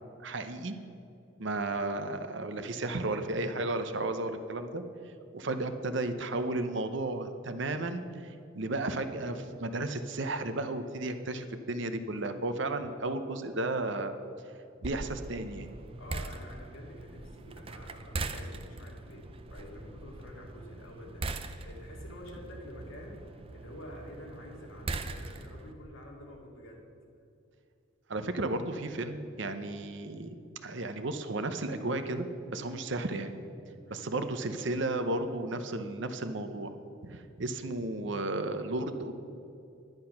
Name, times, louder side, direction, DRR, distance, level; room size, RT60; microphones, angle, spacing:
voice 1, 0.2-0.8 1.4-4.8 5.3-14.1 14.8-15.7 28.1-30.3 30.6-33.3 33.9-36.7 37.0-39.1, right 2 dB, 60° right, 8 dB, 0.7 m, -33 dB
sound 1, 14.8-25.7, right 3 dB, 25° right, 0.5 m, -41 dB
voice 2, 16.0-26.8 33.8-34.1, left 1 dB, 75° left, -1 dB, 2.4 m, -48 dB
10.5 x 9.8 x 5.8 m, 2.6 s
head